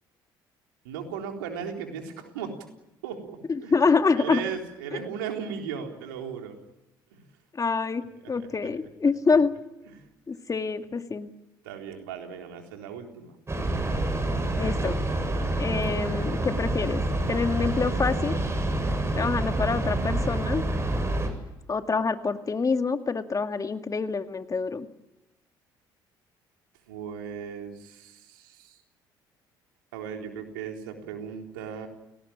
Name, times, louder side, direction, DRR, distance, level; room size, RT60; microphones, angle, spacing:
voice 1, 0.8-2.6 3.0-3.8 4.2-6.6 7.1-7.2 8.2-8.7 9.9-10.0 11.6-13.4 26.9-28.8 29.9-31.9, right 7 dB, 85° right, 3 dB, 3.9 m, -37 dB
voice 2, 3.5-4.4 4.9-5.0 7.6-9.5 10.3-11.3 14.5-15.0 15.6-17.0 17.3-18.4 19.1-20.6 21.7-24.9, left 4 dB, 30° left, 8 dB, 2.1 m, -26 dB
Train, 13.5-21.3, right 1 dB, 25° right, 7.4 m, -27 dB
30.0 x 18.5 x 8.9 m, 0.95 s
hypercardioid pair, 55°, 11 cm